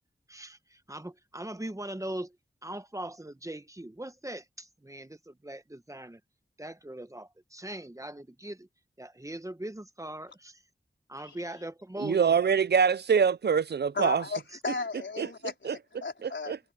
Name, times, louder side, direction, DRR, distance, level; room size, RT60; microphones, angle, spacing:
voice 1, 0.3-2.4 2.6-6.2 6.6-8.7 9.0-10.6 11.1-12.4, right 1 dB, 15° right, 1.1 m, -40 dB
voice 2, 12.0-14.2 15.2-15.3 15.6-15.8 16.2-16.6, right 6 dB, 65° right, 0.4 m, -24 dB
voice 3, 13.9-15.7 16.0-16.5, left 4 dB, 90° left, 4.2 m, -35 dB
wide cardioid pair, 85°, 19 cm